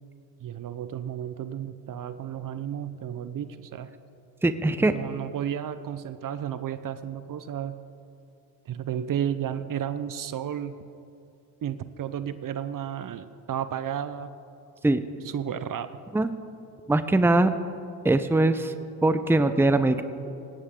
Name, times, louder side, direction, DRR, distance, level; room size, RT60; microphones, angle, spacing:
voice 1, 0.4-3.9 4.9-7.8 8.7-10.8 11.6-14.3 15.2-15.9, right 9 dB, 45° right, 12 dB, 0.9 m, -32 dB
voice 2, 4.4-4.9 14.8-15.0 16.1-16.3 16.9-17.5 18.0-18.7 19.0-20.0, right 2 dB, 5° right, 10 dB, 0.8 m, -21 dB
18.5 x 16.5 x 3.8 m, 2.7 s
supercardioid pair, 70°, 44 cm